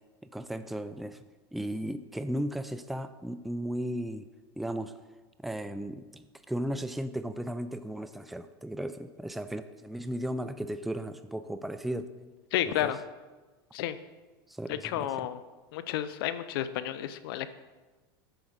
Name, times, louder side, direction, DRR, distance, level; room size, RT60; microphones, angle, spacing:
voice 1, 0.3-1.2 1.5-4.3 4.6-4.9 5.4-12.3 12.7-12.9 14.5-15.3, right 1 dB, ahead, 10 dB, 0.4 m, -35 dB
voice 2, 12.5-13.0 13.7-13.9 14.8-15.4 15.7-17.5, left 12 dB, 70° left, 13 dB, 0.6 m, -31 dB
8.1 x 4.9 x 6.2 m, 1.2 s
supercardioid pair, 115°, 13 cm